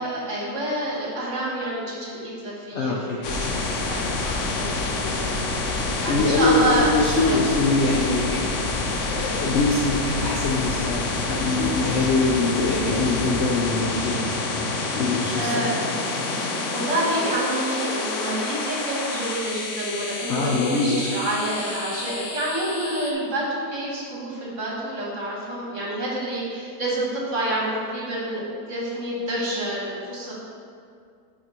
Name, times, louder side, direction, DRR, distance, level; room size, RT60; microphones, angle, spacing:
voice 1, 0.0-7.0 7.2-7.4 15.3-15.7 16.3-30.3, right 1 dB, 45° right, -5 dB, 1.6 m, -28 dB
voice 2, 2.7-3.2 6.1-8.4 9.1-14.3 14.9-15.8 20.3-21.2, left 3 dB, 85° left, -2 dB, 0.6 m, -23 dB
sound 1, 3.2-23.1, left 3 dB, 60° left, 0.9 m, -28 dB
10.5 x 4.0 x 3.1 m, 2.2 s
omnidirectional pair, 1.9 m